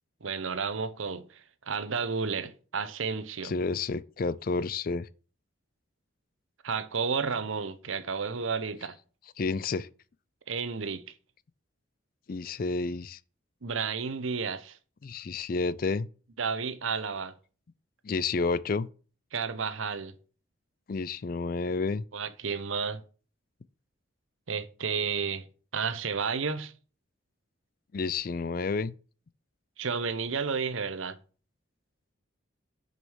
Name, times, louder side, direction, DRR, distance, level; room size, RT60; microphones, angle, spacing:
voice 1, 0.2-3.5 6.6-9.0 10.5-11.0 13.6-14.8 16.4-17.3 19.3-20.1 22.1-23.0 24.5-25.4 25.7-26.7 29.8-31.2, right 5 dB, 85° right, 0.8 m, -32 dB
voice 2, 3.4-5.1 9.4-9.9 12.3-13.2 15.0-16.1 18.0-18.9 20.9-22.0 27.9-28.9, left 4 dB, 45° left, 0.4 m, -30 dB
6.4 x 5.3 x 6.2 m
head